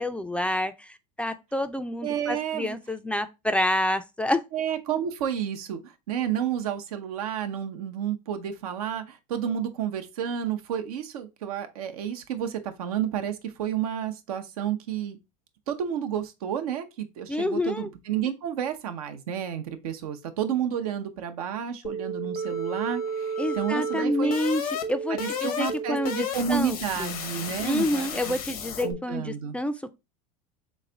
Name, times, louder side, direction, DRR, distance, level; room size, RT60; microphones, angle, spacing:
voice 1, 0.0-4.4 17.3-17.9 23.4-24.6 24.9-27.1 27.6-29.9, left 1 dB, 5° left, 0.3 m, -28 dB
voice 2, 2.0-2.8 4.5-15.2 15.7-24.3 25.1-28.4 28.8-29.6, right 9 dB, 85° right, 0.7 m, -31 dB
sound 1, 21.8-28.9, equal, 80° left, 0.9 m, -32 dB
3.4 x 3.1 x 3.8 m
hypercardioid pair, 90°, 18 cm